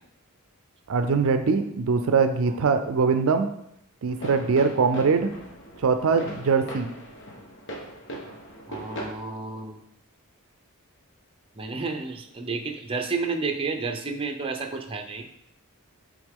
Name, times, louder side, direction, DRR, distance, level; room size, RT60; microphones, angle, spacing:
voice 1, 0.9-3.5 4.0-5.3 5.8-6.9, right 5 dB, 65° right, 8 dB, 0.4 m, -22 dB
sound 1, 4.1-9.1, equal, 60° left, 1.2 m, -40 dB
voice 2, 8.7-9.8 11.6-15.3, right 4 dB, 25° right, 5 dB, 0.6 m, -31 dB
7.8 x 3.7 x 3.7 m, 0.74 s
head